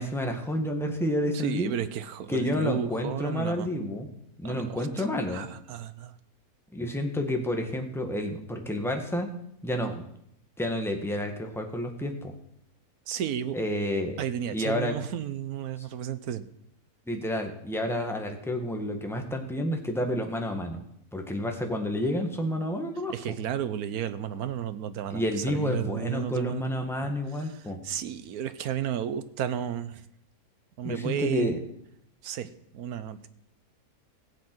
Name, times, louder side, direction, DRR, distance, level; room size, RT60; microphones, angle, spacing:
voice 1, 0.0-1.7 2.3-4.1 4.4-5.5 6.7-9.3 9.6-10.0 10.6-12.3 13.5-14.2 14.5-14.9 15.8-15.9 17.1-20.8 21.1-23.4 25.1-27.8 30.8-31.6, left 1 dB, ahead, 3 dB, 1.5 m, -30 dB
voice 2, 1.3-3.7 4.4-6.1 13.1-13.6 14.2-16.4 23.1-26.7 27.5-30.0 30.8-31.7 32.2-33.3, right 9 dB, 80° right, 13 dB, 1.3 m, -33 dB
17.0 x 7.6 x 6.1 m, 0.75 s
omnidirectional pair, 1.6 m